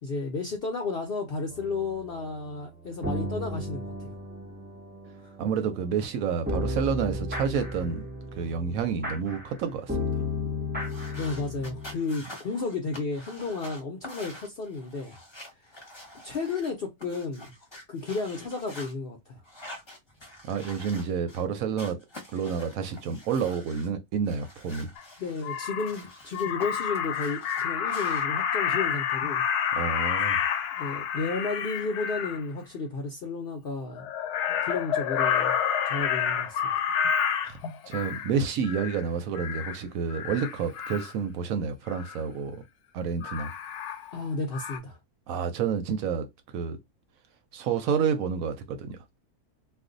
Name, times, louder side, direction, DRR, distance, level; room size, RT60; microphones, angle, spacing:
voice 1, 0.0-4.1 5.2-5.3 11.1-15.2 16.2-17.5 17.9-19.4 25.2-29.4 30.7-34.1 34.5-35.6 35.8-36.7 44.1-45.0, left 4 dB, 60° left, 0.6 m, -33 dB
sound 1, 1.5-12.0, left 2 dB, 15° right, 0.3 m, -34 dB
voice 2, 5.4-8.0 8.4-10.1 20.4-22.0 22.3-24.9 29.7-30.4 37.4-37.6 37.9-42.6 42.9-43.5 45.3-46.3 46.5-46.8 47.5-49.2, right 6 dB, 70° right, 0.9 m, -29 dB
sound 2, 10.8-16.7 17.0-18.9 19.4-21.4 21.8-23.9 24.2-26.7 26.9-28.2, left 1 dB, 20° left, 0.8 m, -46 dB
Crow, 25.0-25.1 25.4-26.0 26.3-32.4 34.0-38.3 38.6-39.0 39.4-39.8 40.1-41.1 41.9-42.2 43.2-44.3 44.5-44.8, left 8 dB, 90° left, 1.1 m, -29 dB
2.5 x 2.2 x 3.8 m
omnidirectional pair, 1.6 m